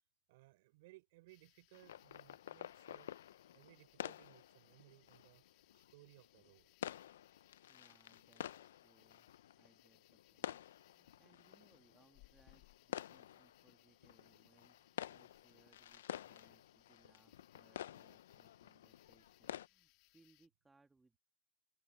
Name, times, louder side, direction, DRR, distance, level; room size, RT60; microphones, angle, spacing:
voice 1, 0.3-3.1 3.5-5.4 5.7-6.7, right 20 dB, 55° right, 5.6 m, -63 dB
sound 1, 1.3-20.5, left 24 dB, 45° left, 3.1 m, -72 dB
sound 2, 1.7-19.7, left 11 dB, 80° left, 0.4 m, -51 dB
voice 2, 7.7-9.3 9.6-21.2, right 3 dB, 5° right, 1.6 m, -72 dB
open air
supercardioid pair, 155°, 0 cm